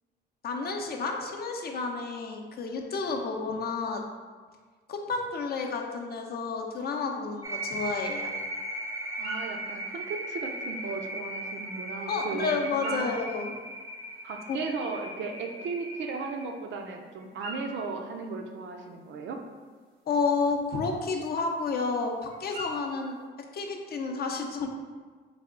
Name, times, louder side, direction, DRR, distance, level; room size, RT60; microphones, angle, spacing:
voice 1, 0.4-4.0 4.9-8.3 12.1-13.5 14.5-14.6 20.1-23.2 23.5-24.7, left 4 dB, 50° left, 2 dB, 0.5 m, -30 dB
sound 1, 7.4-16.4, right 1 dB, 15° right, 0.5 m, -37 dB
sound 2, 8.9-23.3, right 1 dB, 90° right, 1.2 m, -47 dB
voice 2, 9.2-12.6 12.8-13.1 14.2-19.4, right 4 dB, 70° right, 3 dB, 0.5 m, -36 dB
3.4 x 2.2 x 3.7 m, 1.5 s
cardioid pair, 90°, 20 cm